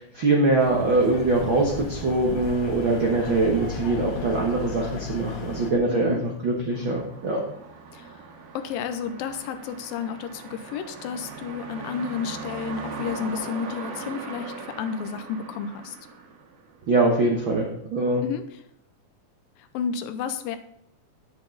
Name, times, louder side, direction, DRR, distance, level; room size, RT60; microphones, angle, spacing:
voice 1, 0.0-7.4 16.9-18.2, right 2 dB, 70° right, -1 dB, 1.1 m, -23 dB
sound 1, 0.6-5.7, left 5 dB, 70° left, 1.2 m, -36 dB
voice 2, 5.9-6.2 7.9-8.1 8.5-16.0 18.2-18.4 19.6-20.6, left 7 dB, 85° left, 9 dB, 2.4 m, -31 dB
sound 2, 6.7-16.9, right 5 dB, 85° right, 3.2 m, -39 dB
8.9 x 7.9 x 3.9 m, 0.72 s
omnidirectional pair, 4.2 m